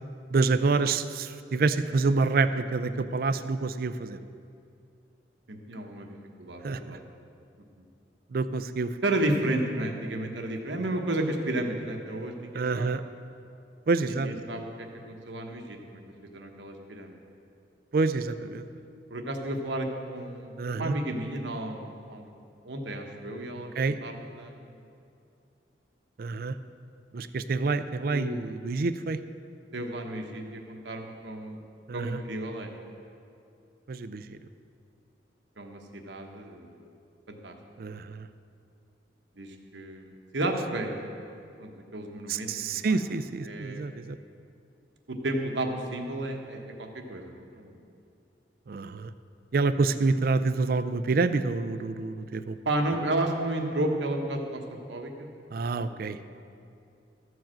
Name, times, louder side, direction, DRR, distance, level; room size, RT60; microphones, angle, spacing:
voice 1, 0.3-4.2 6.6-7.0 8.3-9.0 12.5-13.0 13.9-14.3 17.9-18.6 20.6-20.9 23.8-24.0 26.2-26.5 27.1-29.2 31.9-32.2 33.9-34.4 37.8-38.3 42.3-44.2 48.7-49.1 49.5-52.6 55.5-56.2, right 3 dB, 55° right, 11 dB, 0.4 m, -27 dB
voice 2, 5.5-6.1 6.4-7.0 7.8-7.9 9.0-12.9 14.0-17.2 19.1-22.2 22.6-24.5 28.1-28.4 29.7-31.6 31.9-32.7 35.6-36.9 37.3-37.6 39.4-41.0 41.6-43.0 43.4-43.8 45.1-47.8 52.6-55.3 55.8-56.6, right 1 dB, 80° right, 3 dB, 1.1 m, -33 dB
13.0 x 4.7 x 7.5 m, 2.5 s
head